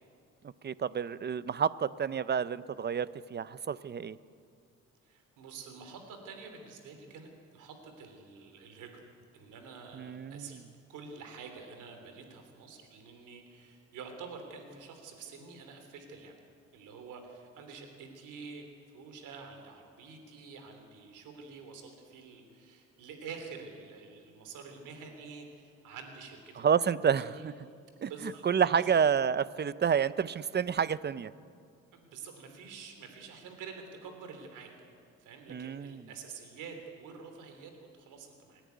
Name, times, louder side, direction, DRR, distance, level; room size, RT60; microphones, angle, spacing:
voice 1, 0.4-4.2 9.9-10.6 26.6-27.3 28.0-28.1 28.4-31.3 35.5-36.0, right 7 dB, 35° right, 17 dB, 0.6 m, -29 dB
voice 2, 5.0-9.0 9.3-16.3 16.7-27.4 28.0-28.8 31.9-34.7 35.2-38.6, right 5 dB, 90° right, 5 dB, 3.3 m, -47 dB
27.0 x 10.0 x 9.3 m, 2.3 s
cardioid pair, 90°, 30 cm